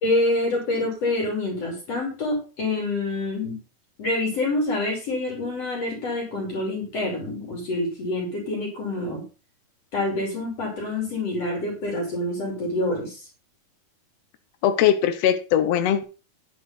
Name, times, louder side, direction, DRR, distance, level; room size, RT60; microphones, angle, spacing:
voice 1, 0.0-3.6 4.0-9.2 9.9-13.2, left 2 dB, 45° left, 0 dB, 3.8 m, -26 dB
voice 2, 14.6-16.0, left 10 dB, 65° left, 8 dB, 1.8 m, -20 dB
10.5 x 5.7 x 5.7 m, 0.34 s
omnidirectional pair, 4.3 m